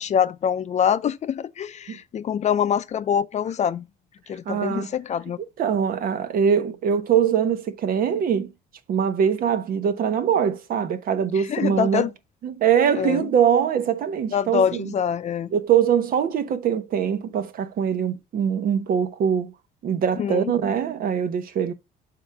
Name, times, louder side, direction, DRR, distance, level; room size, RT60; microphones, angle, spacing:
voice 1, 0.0-3.8 4.3-5.4 11.3-12.1 12.9-13.3 14.3-15.5 20.2-20.5, left 8 dB, 45° left, 0.6 m, -24 dB
voice 2, 4.5-4.9 5.6-8.5 8.9-12.1 12.4-14.9 15.5-19.5 19.8-21.7, right 8 dB, 60° right, 1.0 m, -22 dB
7.0 x 3.8 x 5.7 m
cardioid pair, 110°, 17 cm